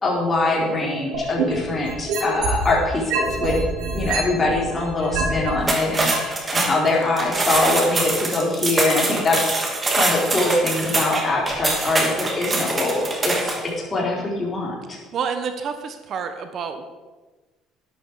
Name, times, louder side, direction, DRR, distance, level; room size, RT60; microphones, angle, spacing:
voice 1, 0.0-3.6 3.9-9.7 10.0-15.0, left 2 dB, 25° left, -2 dB, 4.3 m, -23 dB
sound 1, 1.1-2.7 3.1-5.5 6.1-6.2, right 4 dB, 80° right, 4.1 m, -25 dB
sound 2, 5.6-13.7, right 2 dB, 25° right, 2.6 m, -24 dB
voice 2, 15.1-16.8, right 6 dB, 55° right, 8 dB, 1.2 m, -28 dB
11.5 x 11.5 x 4.9 m, 1.3 s
cardioid pair, 100°, 0 cm